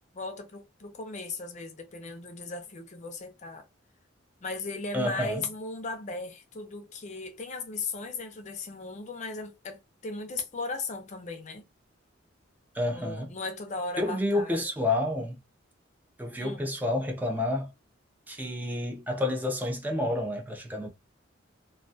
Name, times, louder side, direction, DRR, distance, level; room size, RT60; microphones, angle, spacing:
voice 1, 0.1-3.6 4.4-11.7 12.9-14.6 16.4-16.6, left 3 dB, 40° left, 0.5 m, -37 dB
voice 2, 4.9-5.4 12.7-13.3 14.0-15.4 16.2-17.7 18.3-20.9, left 1 dB, 10° right, 0.5 m, -29 dB
2.2 x 2.2 x 2.5 m
head